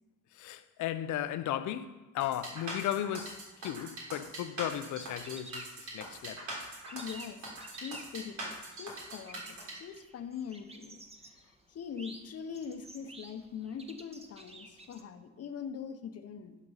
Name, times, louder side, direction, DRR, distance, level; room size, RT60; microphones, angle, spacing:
voice 1, 0.4-3.4 3.6-5.7 5.9-6.4, left 11 dB, 75° left, 0.6 m, -35 dB
sound 1, 2.2-9.7, right 1 dB, 70° right, 3.4 m, -42 dB
sound 2, 5.0-6.4 6.7-15.0, right 2 dB, 20° right, 1.2 m, -52 dB
voice 2, 6.9-7.5 7.7-11.0 11.4-16.6, left 7 dB, 55° left, 0.9 m, -42 dB
11.0 x 5.3 x 5.5 m
cardioid pair, 90°, 30 cm